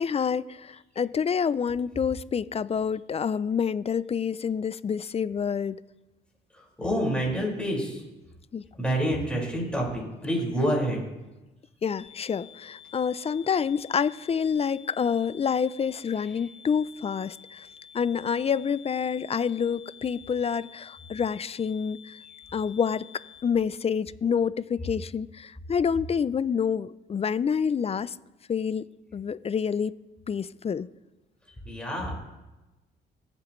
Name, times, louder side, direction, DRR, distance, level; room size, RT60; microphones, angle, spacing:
voice 1, 0.0-5.8 8.5-8.6 11.8-17.7 17.9-22.1 22.5-23.0 23.4-28.1 28.5-28.9 29.1-29.9 30.3-30.9, left 7 dB, 30° left, 18 dB, 0.4 m, -27 dB
voice 2, 6.5-8.0 8.7-11.0 16.2-16.5 31.6-32.2, equal, 5° left, -3 dB, 5.0 m, -28 dB
sound 1, 12.0-23.4, left 8 dB, 55° left, 2.2 m, -50 dB
20.0 x 8.6 x 3.1 m, 1.1 s
cardioid pair, 90°, 20 cm